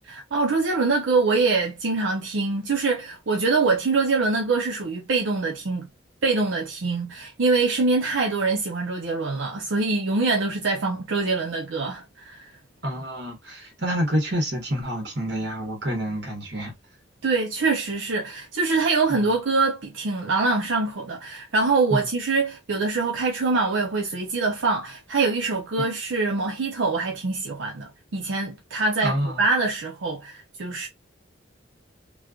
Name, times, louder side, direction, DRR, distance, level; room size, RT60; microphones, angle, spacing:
voice 1, 0.1-5.9 6.2-12.4 17.2-30.9, right 3 dB, 90° right, 0.7 m, -24 dB
voice 2, 12.8-16.7 19.1-19.3 21.9-22.1 25.8-25.9 29.0-29.4, equal, 60° right, 1.4 m, -28 dB
3.1 x 2.2 x 2.3 m
head